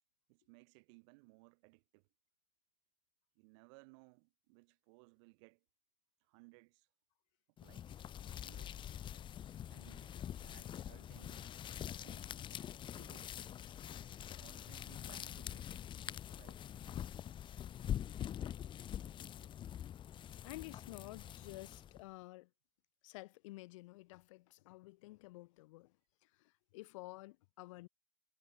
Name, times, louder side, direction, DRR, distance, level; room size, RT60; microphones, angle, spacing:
voice 1, 0.3-2.0 3.4-5.6 6.3-6.9 7.6-8.0 8.3-8.8 9.7-11.5 12.0-12.3 12.9-13.4 14.4-15.9 16.3-16.7, right 29 dB, 50° right, 7.2 m, -63 dB
sound 1, 7.6-22.0, left 10 dB, 25° left, 1.7 m, -45 dB
voice 2, 20.4-22.5 23.0-25.9 26.4-27.9, left 21 dB, 55° left, 1.2 m, -51 dB
hypercardioid pair, 120°, 20 cm